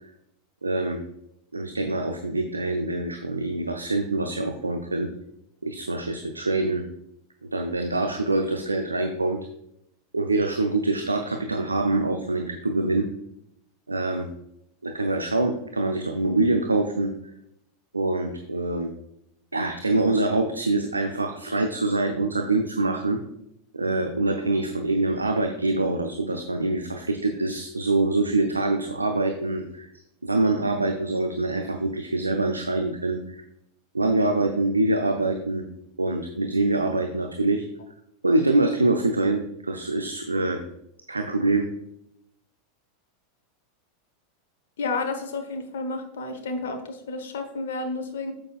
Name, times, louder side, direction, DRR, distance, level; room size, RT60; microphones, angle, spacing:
voice 1, 0.6-1.0 1.5-5.1 5.6-6.8 7.5-9.4 10.1-13.1 13.9-14.3 14.8-17.1 17.9-18.9 19.5-23.2 23.7-29.9 30.2-33.4 33.9-35.6 36.0-37.6 38.2-40.6 41.1-41.7, right 2 dB, 85° right, 5 dB, 0.6 m, -25 dB
voice 2, 44.8-48.3, left 3 dB, 65° left, 6 dB, 1.3 m, -31 dB
8.6 x 7.7 x 2.4 m, 0.77 s
figure-of-eight pair, 85°, 0 cm